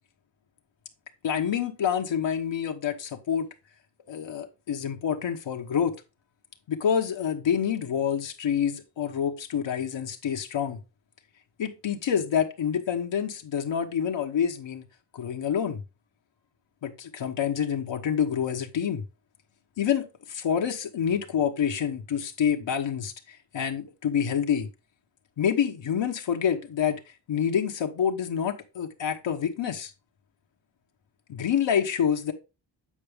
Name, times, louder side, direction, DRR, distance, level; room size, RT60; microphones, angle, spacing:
voice 1, 1.2-3.5 4.1-5.9 6.7-10.8 11.6-14.8 15.1-15.8 16.8-19.0 19.8-24.7 25.4-27.0 27.3-29.9 31.3-32.3, left 8 dB, 75° left, 1.1 m, -27 dB
8.6 x 4.6 x 3.5 m
cardioid pair, 75°, 45 cm